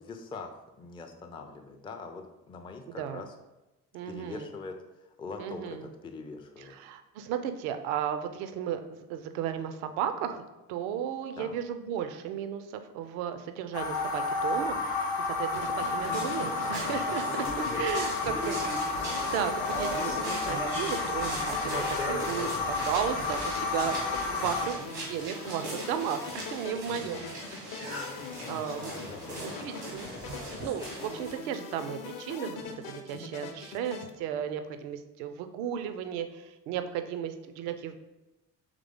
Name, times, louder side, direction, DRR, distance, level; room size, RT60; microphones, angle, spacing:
voice 1, 0.1-3.3 4.1-4.8 5.0-6.7 11.4-11.6 17.7-18.8 26.8-27.3 29.1-29.8, left 4 dB, 10° left, 4 dB, 0.3 m, -43 dB
voice 2, 2.9-3.2 3.9-4.5 5.4-5.9 6.6-18.5 19.3-24.0 24.3-27.6 28.5-29.1 29.4-30.1 30.5-37.9, right 9 dB, 65° right, 9 dB, 0.5 m, -35 dB
sound 1, 13.7-24.7, left 3 dB, 85° left, 0.6 m, -31 dB
sound 2, 15.5-34.1, left 5 dB, 45° left, 0.7 m, -42 dB
sound 3, 16.0-31.3, right 1 dB, 85° right, 1.3 m, -38 dB
3.7 x 3.2 x 3.5 m, 1.0 s
figure-of-eight pair, 40°, 47 cm